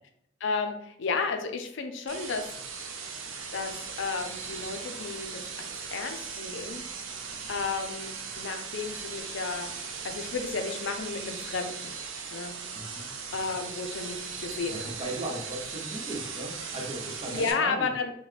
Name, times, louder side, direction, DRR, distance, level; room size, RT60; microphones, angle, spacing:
voice 1, 0.4-2.4 3.5-3.7 4.0-6.8 7.5-8.1 8.4-9.7 10.0-12.0 12.3-12.5 12.9-13.0 13.3-14.9 17.3-18.1, left 4 dB, 65° left, 6 dB, 0.5 m, -32 dB
sound 1, 2.1-17.5, right 5 dB, 70° right, 0.5 m, -38 dB
voice 2, 12.7-13.1 14.7-17.9, right 1 dB, 30° right, 0 dB, 0.7 m, -37 dB
3.8 x 2.2 x 3.2 m, 0.73 s
head